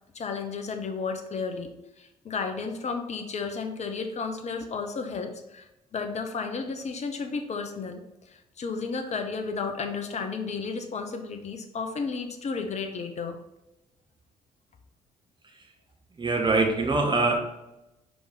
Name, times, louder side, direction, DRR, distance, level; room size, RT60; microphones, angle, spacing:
voice 1, 0.1-13.4, left 4 dB, 40° left, 6 dB, 0.9 m, -33 dB
voice 2, 16.2-17.4, right 3 dB, 25° right, 2 dB, 1.4 m, -23 dB
5.2 x 4.7 x 3.9 m, 0.93 s
figure-of-eight pair, 45°, 18 cm